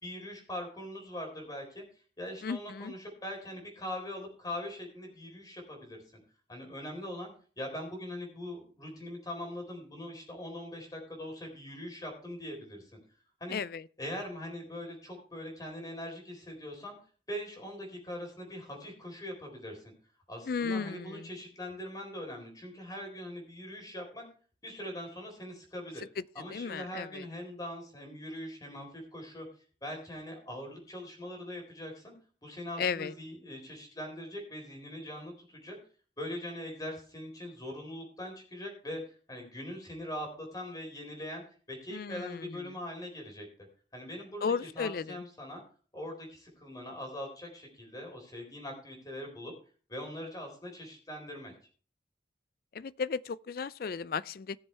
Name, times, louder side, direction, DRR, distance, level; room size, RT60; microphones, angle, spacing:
voice 1, 0.0-1.8 2.2-6.0 6.5-13.0 13.4-13.6 14.0-17.0 17.3-19.9 20.3-24.3 24.6-26.0 26.3-29.5 29.8-32.1 32.4-35.8 36.2-43.5 43.9-45.6 45.9-49.5 49.9-51.5, left 1 dB, 20° left, 4.0 m, -42 dB
voice 2, 2.4-2.9 13.5-13.8 20.5-21.3 26.5-27.2 32.8-33.1 41.9-42.6 44.4-45.2 52.7-54.6, left 5 dB, 55° left, 0.4 m, -34 dB
18.0 x 7.2 x 3.4 m
head